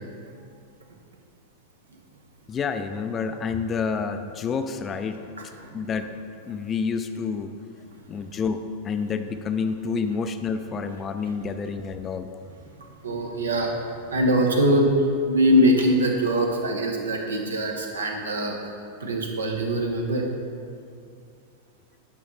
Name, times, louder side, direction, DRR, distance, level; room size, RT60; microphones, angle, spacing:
voice 1, 2.5-5.2 5.7-6.1 6.5-7.5 8.1-12.4, left 5 dB, 25° left, 8 dB, 0.4 m, -28 dB
voice 2, 13.0-13.7 14.1-15.0 15.3-18.7 19.0-20.2, equal, 70° right, 2 dB, 1.1 m, -22 dB
9.5 x 5.7 x 4.1 m, 2.3 s
figure-of-eight pair, 90°, 0 cm